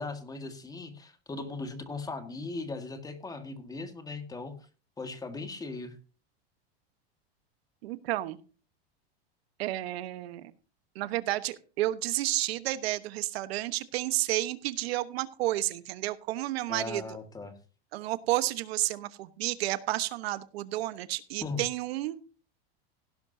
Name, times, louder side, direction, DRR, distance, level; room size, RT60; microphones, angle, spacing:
voice 1, 0.0-4.5 5.0-6.0 16.7-17.6 21.4-21.6, left 3 dB, 10° left, 8 dB, 1.7 m, -38 dB
voice 2, 7.8-8.4 9.6-10.5 10.9-17.0 17.9-22.2, right 16 dB, 75° right, 13 dB, 1.2 m, -31 dB
17.0 x 10.5 x 2.7 m, 0.36 s
supercardioid pair, 150°, 31 cm